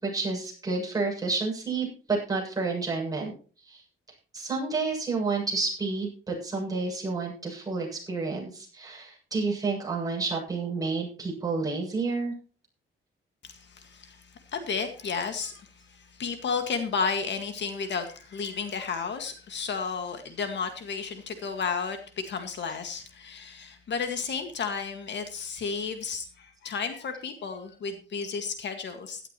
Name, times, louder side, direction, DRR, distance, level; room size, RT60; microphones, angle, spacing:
voice 1, 0.0-3.3 3.7-3.8 4.3-12.3, right 4 dB, 15° right, -3 dB, 7.5 m, -30 dB
voice 2, 13.4-29.2, left 5 dB, 55° left, 7 dB, 1.9 m, -33 dB
16.5 x 12.0 x 3.1 m, 0.38 s
wide cardioid pair, 150°, 21 cm